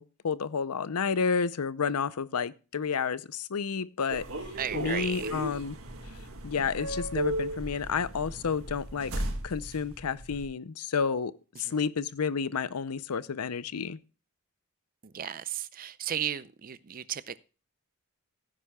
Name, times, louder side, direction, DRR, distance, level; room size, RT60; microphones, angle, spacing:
voice 1, 0.0-4.3 4.7-5.7 6.4-9.1 9.4-11.3 11.6-14.0, left 6 dB, 85° left, 0.6 m, -30 dB
sound 1, 4.1-10.4, right 1 dB, 65° right, 1.7 m, -36 dB
voice 2, 4.6-5.4 11.5-11.8 15.0-17.4, right 9 dB, 40° right, 0.5 m, -35 dB
16.0 x 9.9 x 2.3 m
head